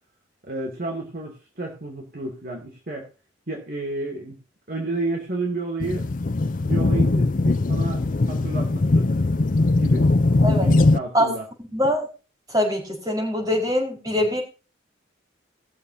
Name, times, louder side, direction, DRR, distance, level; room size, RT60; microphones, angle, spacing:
voice 1, 0.4-3.1 3.5-4.4 4.7-6.1 6.7-8.0 8.3-9.1 9.8-10.1 10.6-11.4, right 2 dB, 50° right, -1 dB, 2.6 m, -31 dB
sound 1, 5.8-11.0, left 2 dB, 45° left, 0.5 m, -20 dB
voice 2, 11.7-12.1 12.5-14.4, left 1 dB, 20° right, -2 dB, 4.4 m, -23 dB
20.5 x 7.1 x 2.7 m, 0.32 s
head